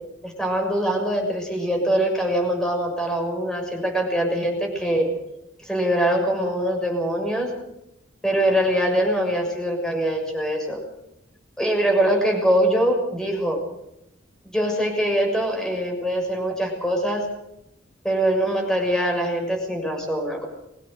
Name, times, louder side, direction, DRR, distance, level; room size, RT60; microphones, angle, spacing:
voice 1, 0.2-5.1 5.6-7.5 8.2-10.8 11.6-13.6 14.5-17.3 18.0-20.5, right 1 dB, 5° left, 2 dB, 6.4 m, -23 dB
23.0 x 17.0 x 7.9 m, 0.83 s
head